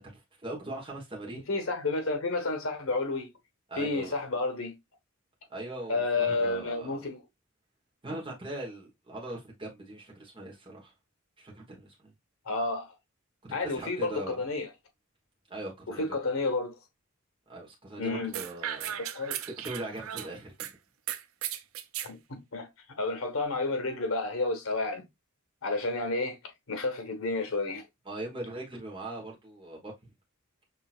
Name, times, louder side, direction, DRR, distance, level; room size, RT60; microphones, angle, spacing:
voice 1, 0.0-1.4 3.7-4.1 5.5-6.9 8.0-10.9 11.4-12.1 13.6-14.4 15.5-16.2 17.5-18.9 19.5-20.5 28.0-29.9, right 1 dB, 25° right, 1.2 m, -40 dB
voice 2, 1.3-3.3 3.8-4.8 5.9-7.2 12.4-12.9 13.5-14.7 15.9-16.7 18.0-18.4 19.0-19.4 22.0-22.7 23.0-25.0 25.6-26.4 26.7-27.8, left 3 dB, 80° left, 1.3 m, -31 dB
sound 1, 18.3-20.7 21.1-22.1, right 10 dB, 80° right, 0.5 m, -36 dB
5.9 x 2.8 x 2.4 m
head